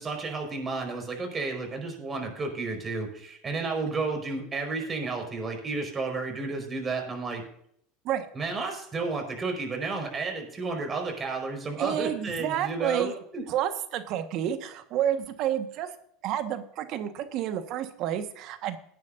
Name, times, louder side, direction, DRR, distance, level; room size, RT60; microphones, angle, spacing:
voice 1, 0.0-7.4 8.3-13.4, right 3 dB, 25° right, 3 dB, 5.1 m, -32 dB
voice 2, 11.8-13.1 13.5-15.9 16.2-18.8, right 10 dB, 55° right, 9 dB, 1.5 m, -30 dB
18.5 x 9.5 x 2.7 m, 0.67 s
supercardioid pair, 105°, 0 cm